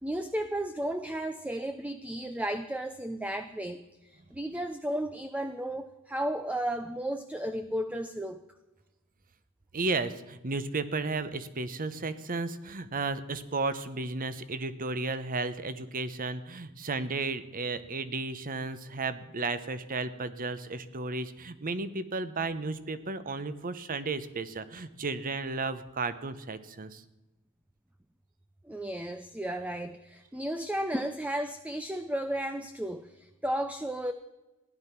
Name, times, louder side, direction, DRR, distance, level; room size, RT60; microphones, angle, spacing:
voice 1, 0.0-8.4 28.6-34.1, right 1 dB, 5° right, 8 dB, 0.5 m, -34 dB
voice 2, 9.7-27.0, right 3 dB, 40° right, 13 dB, 0.9 m, -33 dB
16.0 x 11.0 x 5.9 m, 1.0 s
head